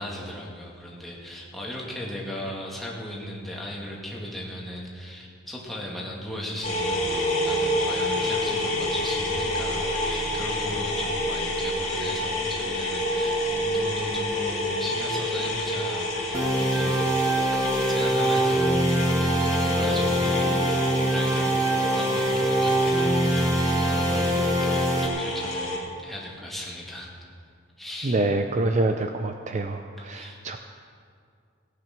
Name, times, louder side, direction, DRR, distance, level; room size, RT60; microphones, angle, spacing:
voice 1, 0.0-17.2 17.5-27.1 27.8-28.2 30.1-30.4, left 1 dB, ahead, -4 dB, 2.2 m, -37 dB
sound 1, 6.6-25.8, left 1 dB, 35° left, 2.7 m, -28 dB
sound 2, 16.3-25.1, right 1 dB, 20° right, 1.2 m, -24 dB
voice 2, 28.0-30.6, right 2 dB, 35° right, 6 dB, 0.5 m, -26 dB
17.0 x 9.2 x 6.0 m, 2.2 s
head